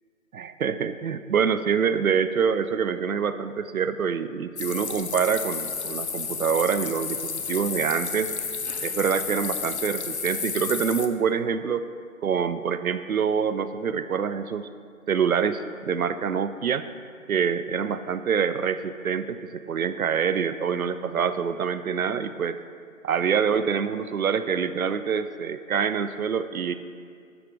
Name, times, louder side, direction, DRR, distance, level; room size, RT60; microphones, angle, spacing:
voice 1, 0.3-8.3 8.8-11.8 12.2-14.7 15.1-16.9 17.3-22.6 23.0-26.7, right 7 dB, 80° right, 12 dB, 0.5 m, -26 dB
sound 1, 4.6-11.1, left 5 dB, 55° left, 0.5 m, -31 dB
12.0 x 5.0 x 3.1 m, 2.2 s
figure-of-eight pair, 150°, 42 cm